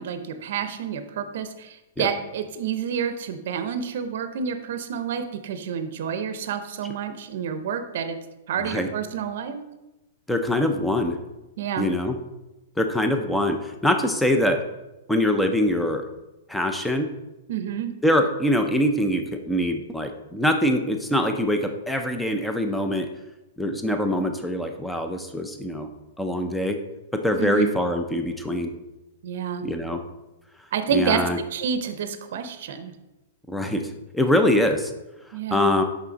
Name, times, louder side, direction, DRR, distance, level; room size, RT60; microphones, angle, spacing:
voice 1, 0.0-8.2 8.5-9.6 11.6-11.9 17.5-17.9 27.4-27.7 29.2-29.7 30.7-31.2 31.5-32.9 35.3-35.7, right 7 dB, 50° right, 9 dB, 0.6 m, -29 dB
voice 2, 8.6-8.9 10.3-11.2 11.8-12.2 12.8-14.6 15.1-16.1 16.5-17.1 18.0-23.1 23.6-25.9 26.2-26.8 27.1-28.7 29.6-30.0 30.9-31.4 33.5-34.9 35.5-35.8, left 1 dB, ahead, 6 dB, 0.4 m, -23 dB
5.9 x 5.7 x 3.9 m, 1.0 s
supercardioid pair, 180°, 0 cm